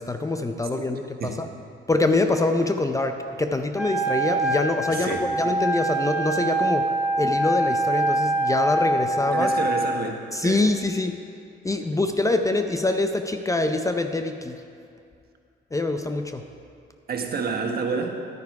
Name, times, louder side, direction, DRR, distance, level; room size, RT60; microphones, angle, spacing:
voice 1, 0.0-1.5 1.9-9.5 10.3-11.2 11.6-14.6 15.7-16.4, left 2 dB, 15° left, 6 dB, 0.5 m, -25 dB
Wind instrument woodwind instrument, 3.7-9.9, right 1 dB, 10° right, 2.1 m, -24 dB
voice 2, 4.9-5.3 9.1-10.6 17.1-18.1, right 5 dB, 50° right, 3 dB, 1.3 m, -29 dB
11.0 x 9.2 x 4.7 m, 2.4 s
cardioid pair, 90°, 20 cm